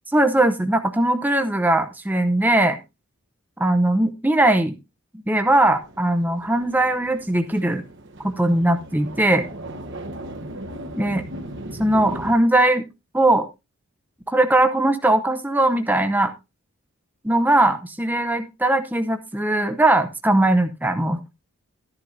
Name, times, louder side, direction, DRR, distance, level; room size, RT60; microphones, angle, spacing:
voice 1, 0.1-2.8 3.6-4.7 5.3-7.8 8.2-9.4 11.0-11.2 11.8-12.9 13.1-13.5 14.3-16.3 17.2-21.2, right 1 dB, 10° right, 6 dB, 0.7 m, -20 dB
sound 1, 5.8-12.3, right 1 dB, 55° right, 1.2 m, -37 dB
13.5 x 11.0 x 2.7 m, 0.26 s
head